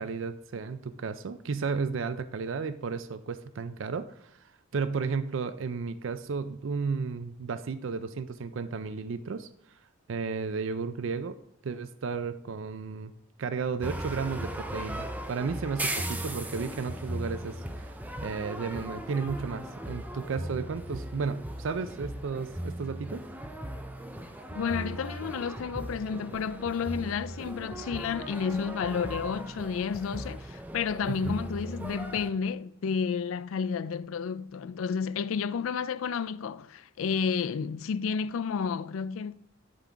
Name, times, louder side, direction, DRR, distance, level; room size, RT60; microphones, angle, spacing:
voice 1, 0.0-4.3 4.7-9.5 10.1-11.4 11.6-13.1 13.4-17.9 18.2-23.2 31.1-31.3, right 5 dB, 70° right, 0.4 m, -33 dB
sound 1, 13.8-32.3, right 1 dB, 10° right, 0.5 m, -38 dB
voice 2, 24.5-39.3, left 6 dB, 80° left, 0.4 m, -31 dB
10.5 x 3.8 x 4.6 m
head